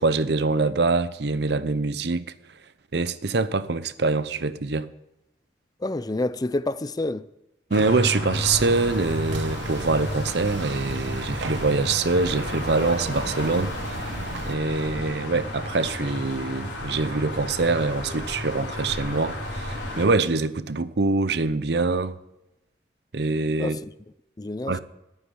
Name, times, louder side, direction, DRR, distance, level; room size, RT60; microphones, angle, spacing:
voice 1, 0.0-2.2 2.9-4.9 7.7-13.7 14.5-22.2 23.1-23.8 24.7-24.8, right 3 dB, 60° right, 0.7 m, -24 dB
voice 2, 5.8-7.3 23.6-23.9 24.4-24.8, left 2 dB, 20° left, 0.4 m, -28 dB
sound 1, 7.7-20.1, left 1 dB, 85° left, 3.9 m, -32 dB
sound 2, 8.3-14.6, right 2 dB, 90° right, 1.0 m, -35 dB
10.5 x 9.6 x 9.6 m
head